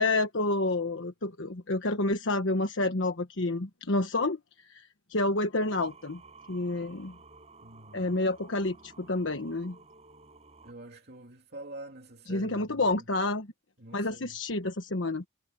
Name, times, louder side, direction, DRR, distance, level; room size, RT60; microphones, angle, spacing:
voice 1, 0.0-4.4 4.7-6.2 6.5-7.1 7.9-9.8 12.3-13.5 13.9-15.2, left 2 dB, 75° left, 1.3 m, -29 dB
Singing, 5.6-10.7, right 4 dB, 35° right, 5.5 m, -54 dB
voice 2, 7.6-8.2 10.6-13.1 13.8-14.4, right 2 dB, 55° right, 2.8 m, -46 dB
head